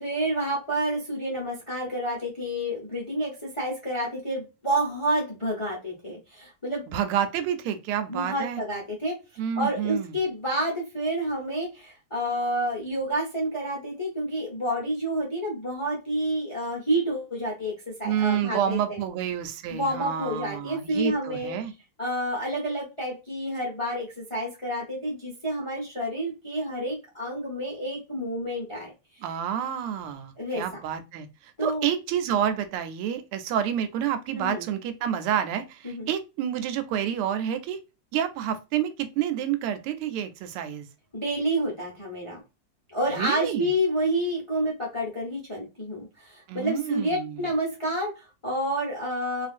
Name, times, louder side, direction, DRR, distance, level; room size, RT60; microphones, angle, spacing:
voice 1, 0.0-6.8 8.1-9.2 9.5-19.0 19.7-21.6 22.0-28.9 30.4-30.8 31.6-31.9 34.3-34.6 35.8-36.1 41.1-42.4 42.9-49.5, right 1 dB, 45° left, 0.3 m, -29 dB
voice 2, 6.9-8.6 9.4-10.2 18.0-21.7 29.2-37.8 38.1-40.9 43.1-43.7 46.5-47.5, right 9 dB, 90° right, 1.5 m, -29 dB
3.2 x 2.4 x 2.5 m
omnidirectional pair, 2.3 m